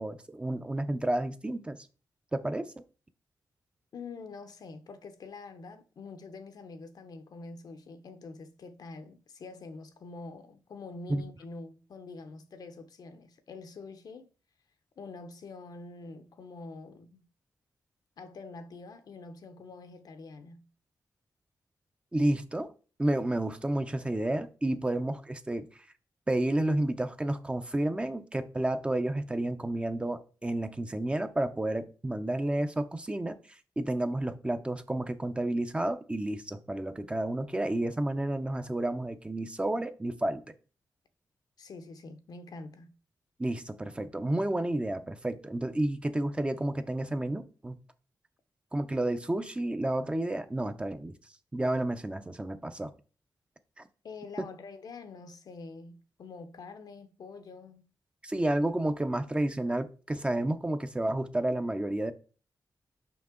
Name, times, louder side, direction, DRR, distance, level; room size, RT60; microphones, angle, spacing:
voice 1, 0.0-1.8 2.3-2.7 11.1-11.2 22.1-22.7 23.0-25.7 26.3-33.4 33.8-40.4 43.4-47.8 48.7-51.1 51.5-52.9 53.8-53.9 54.4-54.5 58.2-62.1, right 1 dB, 15° right, 0.5 m, -31 dB
voice 2, 3.9-14.3 15.0-17.2 18.2-20.6 41.6-42.9 54.0-57.9, left 3 dB, 70° left, 0.8 m, -46 dB
5.8 x 5.5 x 3.7 m
wide cardioid pair, 110°, 7 cm